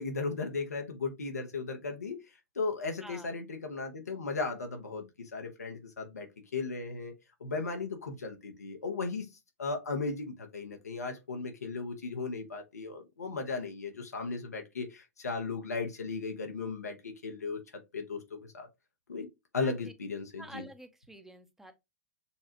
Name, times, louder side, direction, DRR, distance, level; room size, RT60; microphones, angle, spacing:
voice 1, 0.0-2.2 2.5-5.0 5.3-6.3 6.5-7.1 7.4-9.3 9.6-17.6 17.9-18.7 19.1-19.3 19.5-20.6, left 4 dB, 85° left, 1.0 m, -36 dB
voice 2, 3.0-3.4 19.6-19.9 20.4-21.7, right 1 dB, 5° right, 0.8 m, -49 dB
6.9 x 2.4 x 2.9 m
hypercardioid pair, 105°, 8 cm